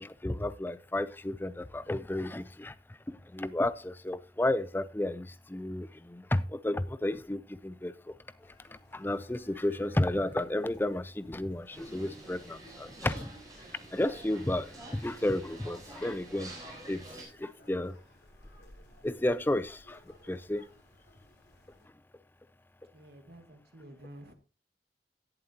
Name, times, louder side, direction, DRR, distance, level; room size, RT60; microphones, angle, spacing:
voice 1, 0.0-2.7 3.1-8.1 8.9-13.3 13.9-16.5 16.9-17.0 17.4-18.0 19.0-20.6, left 1 dB, 10° left, 0.4 m, -32 dB
sound 1, 8.4-21.9, left 1 dB, 80° left, 3.8 m, -60 dB
sound 2, 11.7-17.2, right 1 dB, 20° right, 4.0 m, -48 dB
voice 2, 22.9-24.3, right 1 dB, 60° right, 1.6 m, -50 dB
16.5 x 7.6 x 2.8 m
head